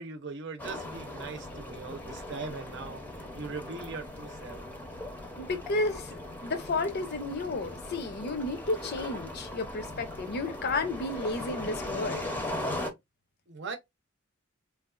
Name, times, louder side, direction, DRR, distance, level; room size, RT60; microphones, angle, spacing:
voice 1, 0.0-4.6 13.5-13.8, right 4 dB, 60° right, 0.7 m, -40 dB
sound 1, 0.6-12.9, left 1 dB, 10° left, 0.6 m, -39 dB
voice 2, 5.4-12.3, left 2 dB, 50° left, 0.6 m, -32 dB
3.3 x 2.3 x 2.4 m
head